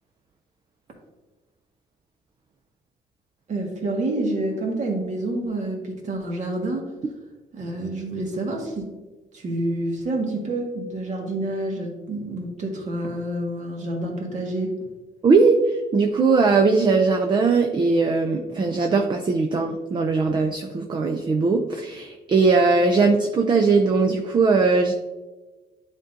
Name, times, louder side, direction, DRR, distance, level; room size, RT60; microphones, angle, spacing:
voice 1, 3.5-6.9 7.5-9.0 9.3-14.8, right 2 dB, 45° right, 0 dB, 1.6 m, -28 dB
voice 2, 15.2-24.9, right 4 dB, 30° right, 4 dB, 0.5 m, -20 dB
10.5 x 3.8 x 2.6 m, 1.2 s
cardioid pair, 130°, 17 cm